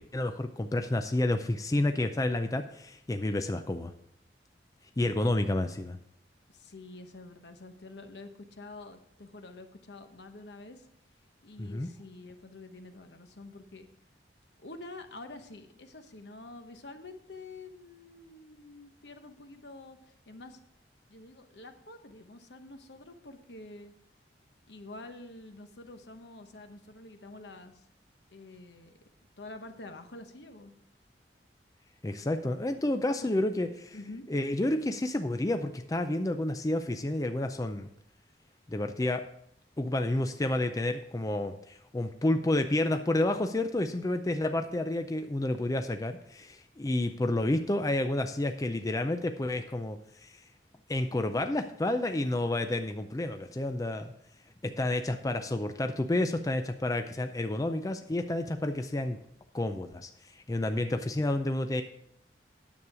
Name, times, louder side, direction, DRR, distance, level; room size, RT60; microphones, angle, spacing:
voice 1, 0.1-3.9 5.0-6.0 11.6-11.9 32.0-34.0 34.3-37.9 38.7-39.3 39.8-50.3 50.9-54.1 54.6-59.2 59.5-60.1 60.5-61.8, left 1 dB, 20° left, 7 dB, 0.4 m, -30 dB
voice 2, 6.5-10.9 11.4-13.9 14.6-20.6 21.1-23.9 24.7-27.8 28.3-28.9 29.4-30.7 33.2-33.3 33.9-34.3, left 2 dB, 75° left, 7 dB, 1.0 m, -47 dB
9.5 x 7.2 x 4.8 m, 0.70 s
head